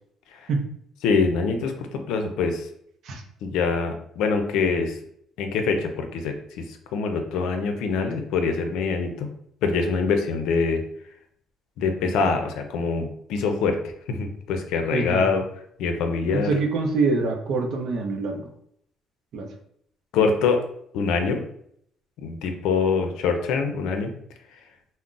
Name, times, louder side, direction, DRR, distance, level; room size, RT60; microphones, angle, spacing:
voice 1, 1.0-2.7 3.4-5.0 5.4-9.3 9.6-10.8 11.8-13.8 14.1-15.4 15.8-16.5 20.1-20.6 20.9-21.4 22.2-24.1, left 5 dB, 90° left, 5 dB, 0.4 m, -24 dB
voice 2, 14.9-15.3 16.3-18.4 19.3-19.5, right 3 dB, 60° right, 4 dB, 0.5 m, -25 dB
2.4 x 2.0 x 3.8 m, 0.68 s
cardioid pair, 140°, 0 cm